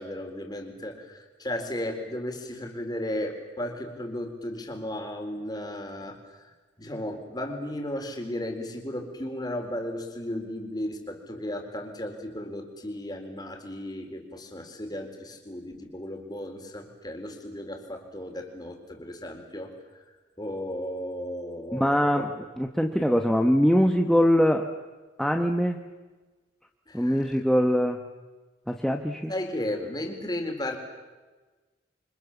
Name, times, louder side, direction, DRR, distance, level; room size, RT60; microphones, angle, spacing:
voice 1, 0.0-6.2 6.8-19.7 20.4-22.3 26.9-27.3 29.3-30.8, left 1 dB, 20° left, 4 dB, 4.1 m, -35 dB
voice 2, 21.7-24.7 25.2-25.9 26.9-28.0 28.7-29.3, equal, ahead, 3 dB, 1.3 m, -23 dB
28.5 x 25.0 x 7.3 m, 1.3 s
head